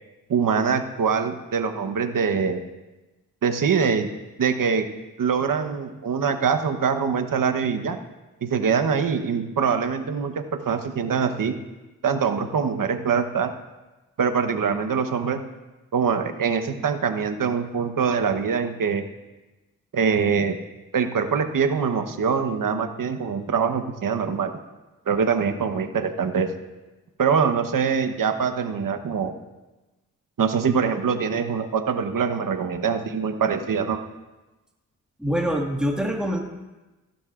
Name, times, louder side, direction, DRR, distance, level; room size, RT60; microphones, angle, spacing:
voice 1, 0.3-2.6 3.4-4.1 4.4-4.9 5.2-8.0 8.4-11.6 12.0-13.5 14.2-15.4 15.9-19.0 19.9-20.6 20.9-24.5 25.1-26.5 27.2-29.3 30.4-34.0, right 6 dB, 65° right, 7 dB, 1.1 m, -23 dB
voice 2, 35.2-36.4, equal, ahead, 0 dB, 2.0 m, -24 dB
15.5 x 11.5 x 2.5 m, 1.1 s
cardioid pair, 60°, 36 cm